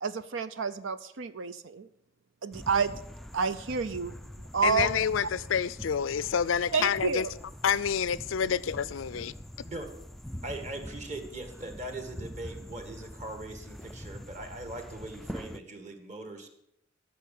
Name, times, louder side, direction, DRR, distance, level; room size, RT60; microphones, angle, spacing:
voice 1, 0.0-1.9 2.4-3.0 3.3-4.2 4.5-4.9 6.7-7.3, right 5 dB, 75° right, 0.6 m, -29 dB
sound 1, 2.5-15.6, equal, ahead, 0.4 m, -44 dB
voice 2, 4.6-7.3 7.6-9.3, left 7 dB, 80° left, 0.4 m, -28 dB
voice 3, 9.6-9.9 10.4-16.5, right 2 dB, 35° right, 1.9 m, -40 dB
13.0 x 6.5 x 8.5 m
head